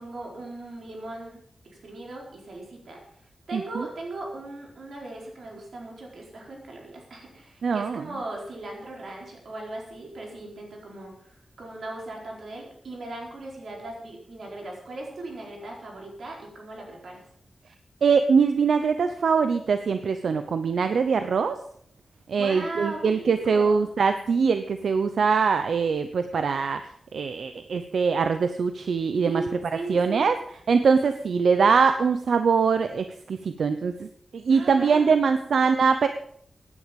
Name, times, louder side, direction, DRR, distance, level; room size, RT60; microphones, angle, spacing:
voice 1, 0.0-1.4 1.6-3.0 3.5-17.2 22.3-23.9 29.2-30.2 34.5-35.2, right 2 dB, 65° right, -1 dB, 4.4 m, -38 dB
voice 2, 3.5-3.9 7.6-8.0 18.0-21.6 22.3-26.8 27.1-29.4 29.9-30.4 30.7-34.1 34.3-36.1, right 5 dB, 85° right, 9 dB, 0.7 m, -22 dB
16.5 x 9.8 x 5.3 m, 0.65 s
wide cardioid pair, 170°, 0 cm